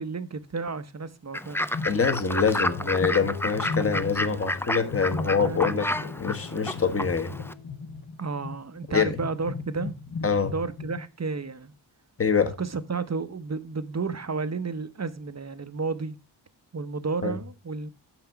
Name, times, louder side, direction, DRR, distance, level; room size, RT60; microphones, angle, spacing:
voice 1, 0.0-1.7 5.4-5.8 8.2-10.0 10.4-11.7 12.6-16.2 16.7-17.9, right 4 dB, 35° right, 0.7 m, -32 dB
Fowl / Bird, 1.3-7.5, left 1 dB, 5° left, 0.4 m, -31 dB
sound 1, 1.7-2.4 2.7-4.4 4.9-11.0, left 4 dB, 50° left, 1.1 m, -37 dB
voice 2, 1.8-5.9 6.2-7.3 8.9-9.2 10.2-10.5 12.2-12.6 17.2-17.4, left 5 dB, 30° left, 1.1 m, -25 dB
sound 2, 2.2-7.9, left 6 dB, 75° left, 0.9 m, -44 dB
6.0 x 5.9 x 5.6 m
cardioid pair, 40°, 47 cm